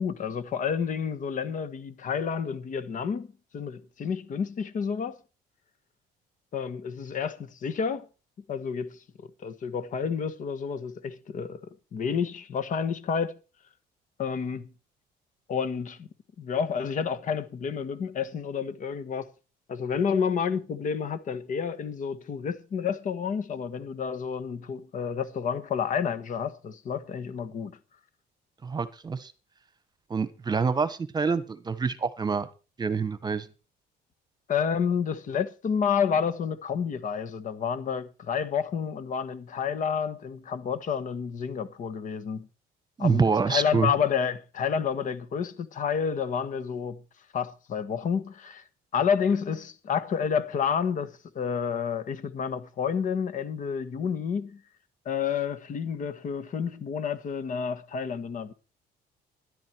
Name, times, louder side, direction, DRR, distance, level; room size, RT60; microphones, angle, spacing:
voice 1, 0.0-5.2 6.5-8.1 8.5-9.0 9.4-13.4 14.2-14.7 15.5-16.1 16.4-19.3 19.7-27.8 34.5-42.5 43.0-47.0 47.3-48.6 48.9-54.6 55.0-58.5, left 7 dB, 50° left, 1.4 m, -30 dB
voice 2, 28.6-29.3 30.1-32.5 32.8-33.5 43.0-43.9, right 5 dB, 25° right, 1.3 m, -26 dB
13.0 x 11.0 x 4.6 m
cardioid pair, 110°, 17 cm